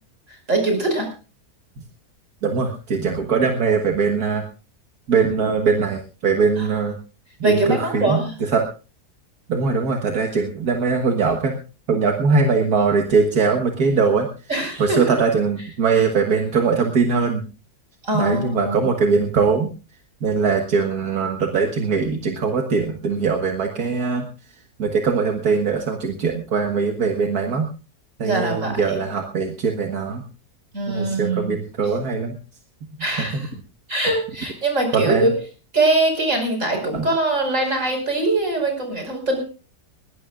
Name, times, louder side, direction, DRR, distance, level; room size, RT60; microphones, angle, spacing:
voice 1, 0.5-1.1 6.6-6.7 7.4-8.4 14.5-15.0 18.0-18.9 28.2-28.8 30.7-31.5 33.0-33.5 33.9-35.4 35.7-39.4, right 2 dB, 50° right, 3 dB, 5.9 m, -22 dB
voice 2, 2.4-4.4 5.1-7.0 7.4-8.2 8.5-8.6 9.5-11.5 11.9-14.3 14.7-17.4 18.1-19.7 20.2-24.3 24.8-27.7 28.2-30.2 30.9-32.4 33.1-33.4 34.9-35.3, right 5 dB, 70° right, 3 dB, 2.0 m, -21 dB
21.0 x 18.0 x 2.5 m, 0.34 s
omnidirectional pair, 1.7 m